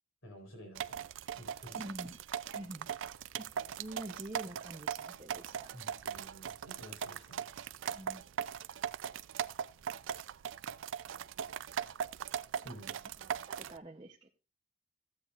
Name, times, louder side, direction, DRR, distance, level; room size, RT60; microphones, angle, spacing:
voice 1, 0.2-1.1 1.4-1.8 5.7-7.4 12.6-12.9, right 1 dB, 75° left, 3 dB, 3.8 m, -51 dB
sound 1, 0.8-13.8, right 8 dB, 65° right, 0.4 m, -40 dB
voice 2, 1.7-2.2 2.5-2.9 3.4-5.8 7.9-8.3 11.1-11.2 12.6-14.3, right 1 dB, 25° right, 0 dB, 0.7 m, -47 dB
14.5 x 8.1 x 2.4 m, 0.33 s
head